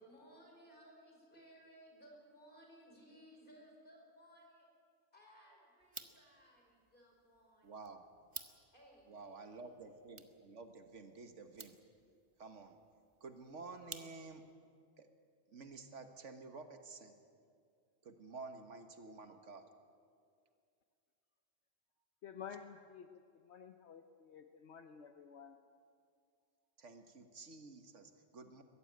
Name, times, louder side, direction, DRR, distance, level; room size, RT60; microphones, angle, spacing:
voice 1, 0.0-4.7 5.1-10.0, equal, 45° left, 0 dB, 5.1 m, -62 dB
sound 1, 5.8-14.5, right 3 dB, 25° right, 1.0 m, -56 dB
voice 2, 7.6-8.0 9.1-11.8 12.4-12.8 13.2-14.5 15.0-15.1 15.5-17.2 18.0-19.7 26.8-28.6, right 3 dB, 75° right, 7 dB, 1.7 m, -51 dB
voice 3, 22.2-25.6, left 7 dB, 65° left, 7 dB, 1.1 m, -52 dB
22.0 x 15.0 x 9.3 m, 2.3 s
omnidirectional pair, 1.3 m